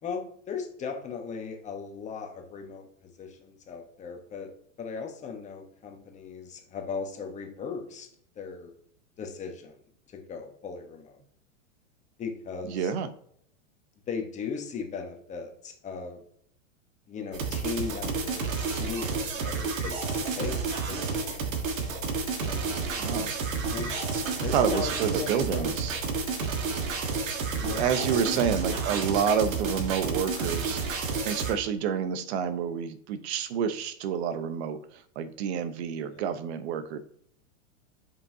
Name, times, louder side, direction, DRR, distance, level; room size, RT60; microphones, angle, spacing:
voice 1, 0.0-4.5 4.8-8.1 8.4-8.7 9.2-9.8 10.1-11.2 12.2-12.9 14.1-16.2 17.1-21.3 21.7-21.8 22.4-23.1 23.7-23.9 24.4-25.7 27.6-28.4 36.1-36.3, left 5 dB, 20° left, 3 dB, 1.0 m, -37 dB
voice 2, 12.7-13.1 23.0-23.3 24.5-26.0 27.6-30.8 31.2-34.8 35.2-37.0, right 7 dB, 55° right, 12 dB, 0.9 m, -28 dB
sound 1, 17.3-31.5, right 4 dB, 85° right, 1.6 m, -30 dB
8.3 x 5.5 x 2.8 m, 0.66 s
hypercardioid pair, 140°, 39 cm